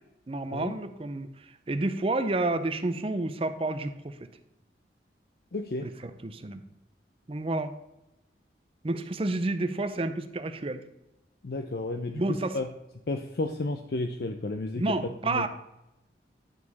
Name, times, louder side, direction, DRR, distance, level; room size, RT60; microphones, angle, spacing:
voice 1, 0.3-1.3 1.7-4.1 6.2-6.6 7.3-7.7 8.8-10.8 12.1-12.6 14.8-15.5, right 2 dB, 30° right, 10 dB, 0.5 m, -29 dB
voice 2, 5.5-5.9 11.4-12.7 13.1-15.0 15.2-15.5, left 2 dB, 60° left, 6 dB, 0.5 m, -32 dB
10.5 x 4.8 x 4.1 m, 0.91 s
head